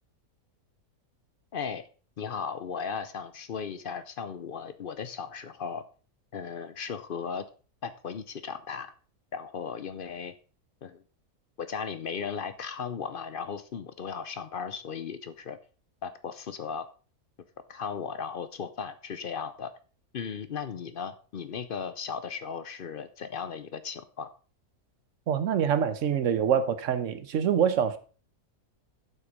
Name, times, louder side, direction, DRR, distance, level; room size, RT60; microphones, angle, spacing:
voice 1, 1.5-1.8 2.2-5.8 6.3-7.4 7.8-8.9 9.3-10.3 10.8-11.0 11.6-15.6 16.0-16.9 17.7-19.7 20.1-24.3, left 6 dB, 55° left, 12 dB, 0.6 m, -36 dB
voice 2, 25.3-28.0, right 8 dB, 60° right, 11 dB, 1.2 m, -25 dB
8.0 x 5.8 x 5.2 m, 0.37 s
omnidirectional pair, 1.5 m